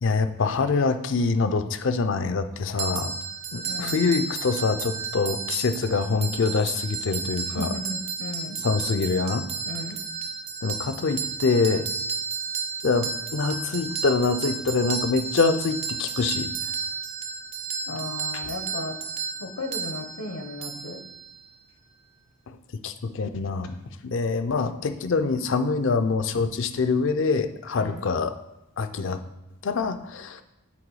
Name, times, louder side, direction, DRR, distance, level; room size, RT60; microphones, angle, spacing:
voice 1, 0.0-3.1 3.5-7.7 8.6-9.5 10.6-11.9 12.8-16.5 22.5-23.8 24.0-28.3 28.8-29.2 29.6-30.4, left 4 dB, 60° left, 9 dB, 0.4 m, -25 dB
sound 1, 2.8-21.6, right 5 dB, 30° right, 0.4 m, -33 dB
voice 2, 3.6-4.0 7.5-8.6 9.7-10.0 17.9-19.0 19.4-21.0 27.8-28.1, left 1 dB, 80° left, 4 dB, 1.0 m, -35 dB
7.8 x 3.1 x 4.7 m, 0.94 s
head